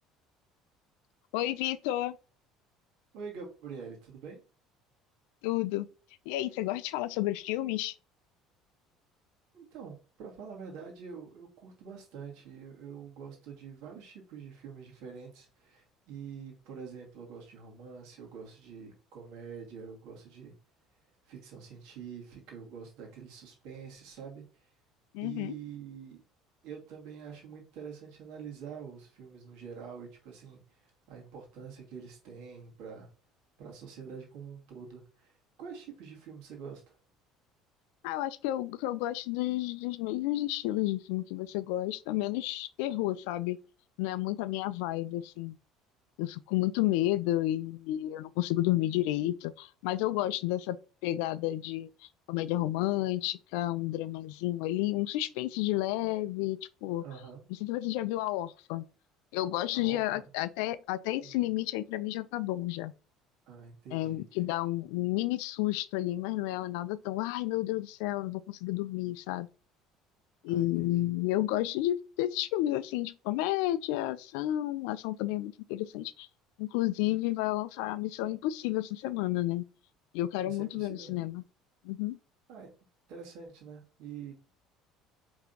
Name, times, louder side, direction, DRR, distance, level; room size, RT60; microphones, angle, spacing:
voice 1, 1.3-2.2 5.4-5.9 6.3-7.9 25.1-25.5 38.0-43.6 44.0-45.6 46.2-50.8 51.0-51.9 52.3-57.0 57.6-58.8 59.3-62.9 63.9-69.5 70.4-76.3 76.6-79.6 80.1-81.4 81.8-82.2, left 15 dB, 65° left, 0.3 m, -31 dB
voice 2, 3.1-4.4 9.5-20.5 21.2-24.7 25.2-26.2 26.6-33.1 33.6-37.0 57.0-57.4 59.7-60.3 61.2-61.5 63.5-64.2 70.5-71.1 80.4-81.1 82.5-82.7 83.1-84.3, right 6 dB, 60° right, 1.9 m, -46 dB
5.0 x 3.5 x 2.7 m
figure-of-eight pair, 60°, 0 cm